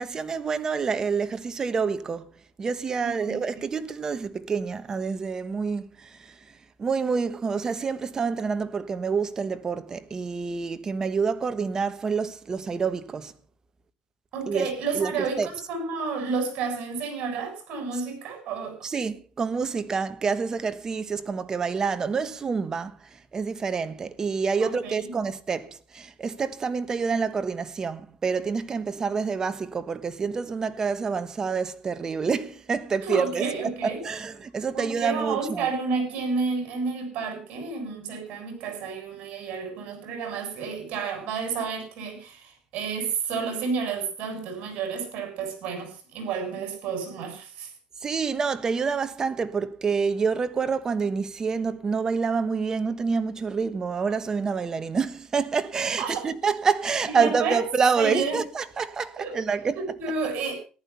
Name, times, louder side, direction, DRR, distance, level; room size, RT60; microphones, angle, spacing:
voice 1, 0.0-2.3 2.6-6.3 6.8-13.3 14.5-14.6 14.9-15.1 15.4-15.5 18.8-23.0 23.3-33.4 33.8-35.6 48.0-59.8, right 5 dB, 25° right, 1.2 m, -27 dB
voice 2, 14.3-18.8 24.6-25.1 33.0-34.0 34.7-47.7 56.0-56.3 57.1-57.6 58.0-58.4 59.2-60.6, right 5 dB, 60° right, 7.5 m, -31 dB
14.5 x 11.5 x 5.6 m
cardioid pair, 125°, 2 cm